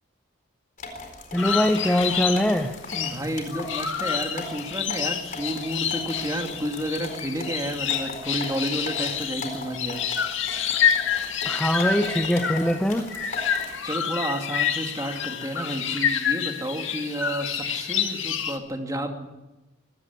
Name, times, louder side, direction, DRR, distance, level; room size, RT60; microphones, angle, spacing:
sound 1, 0.8-13.8, left 2 dB, 40° left, 4.1 m, -39 dB
voice 1, 1.3-2.8 11.4-13.1, equal, 5° left, 5 dB, 0.9 m, -22 dB
sound 2, 1.4-18.6, left 8 dB, 65° left, 2.1 m, -28 dB
voice 2, 2.9-10.0 13.8-19.3, right 1 dB, 15° right, 3 dB, 2.5 m, -31 dB
24.5 x 14.5 x 8.6 m, 1.1 s
head